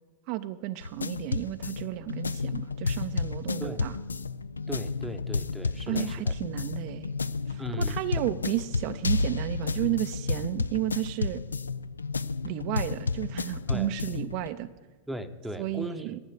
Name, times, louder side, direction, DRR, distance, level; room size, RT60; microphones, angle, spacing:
voice 1, 0.3-3.9 5.9-7.1 7.5-11.4 12.4-14.7 15.6-16.2, right 15 dB, 45° right, 10 dB, 0.4 m, -32 dB
sound 1, 0.8-14.5, left 4 dB, 75° left, 0.3 m, -31 dB
voice 2, 4.7-6.3 7.6-8.3 13.7-13.9 15.1-16.1, equal, 5° right, 8 dB, 0.8 m, -38 dB
13.0 x 7.2 x 7.7 m, 1.3 s
figure-of-eight pair, 90°, 0 cm